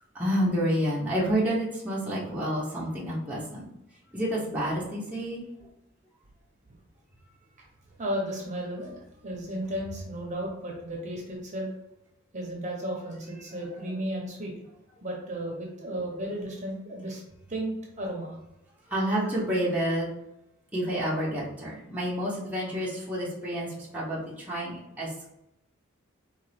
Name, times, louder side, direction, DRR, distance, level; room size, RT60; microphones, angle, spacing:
voice 1, 0.1-3.7 4.1-5.4 15.9-16.0 18.9-20.1 20.7-25.3, equal, 5° right, -7 dB, 1.0 m, -29 dB
voice 2, 8.0-11.7 12.3-14.5 15.0-17.2 17.5-18.3, right 1 dB, 35° right, -1 dB, 1.0 m, -34 dB
4.5 x 3.2 x 3.3 m, 0.87 s
head